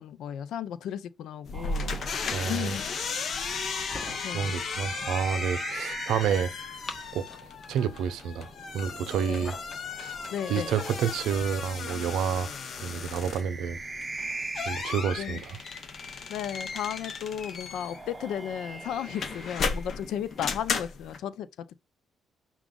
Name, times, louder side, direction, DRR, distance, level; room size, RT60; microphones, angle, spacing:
voice 1, 0.0-1.9 2.5-2.9 4.2-4.5 9.3-9.5 10.3-10.7 15.2-15.4 16.3-21.8, left 9 dB, 80° left, 0.4 m, -34 dB
sound 1, 1.4-21.2, left 5 dB, 55° left, 0.7 m, -35 dB
sound 2, 1.5-7.1 8.4-11.4 12.8-16.2 17.5-20.4, right 3 dB, 20° right, 0.7 m, -43 dB
voice 2, 2.3-2.7 4.3-6.5 7.1-7.3 7.7-9.5 10.0-10.1 10.5-12.5 12.8-13.8 14.7-15.4, right 7 dB, 85° right, 0.6 m, -29 dB
sound 3, 3.5-4.5 6.5-7.6 8.9-9.8, left 1 dB, 25° left, 1.4 m, -44 dB
6.0 x 2.4 x 3.7 m
cardioid pair, 90°, 0 cm